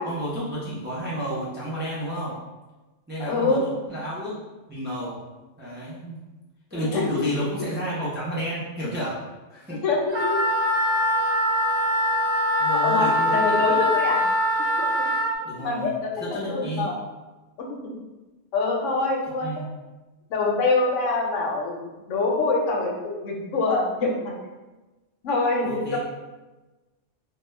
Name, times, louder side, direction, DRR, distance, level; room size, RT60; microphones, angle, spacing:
voice 1, 0.0-2.3 3.1-4.4 4.7-5.2 5.6-6.2 6.7-9.8 12.6-13.6 15.4-15.9 16.2-16.9 19.4-19.6 25.6-26.0, equal, 15° right, -8 dB, 0.4 m, -31 dB
voice 2, 3.2-3.7 6.7-7.1 9.7-10.4 12.8-14.2 15.6-16.9 17.6-18.0 18.5-19.5 20.3-24.3 25.2-26.0, left 3 dB, 85° left, 0 dB, 0.9 m, -25 dB
Wind instrument woodwind instrument, 10.1-15.3, left 1 dB, 70° right, 0.9 m, -22 dB
2.3 x 2.2 x 3.1 m, 1.1 s
omnidirectional pair, 1.3 m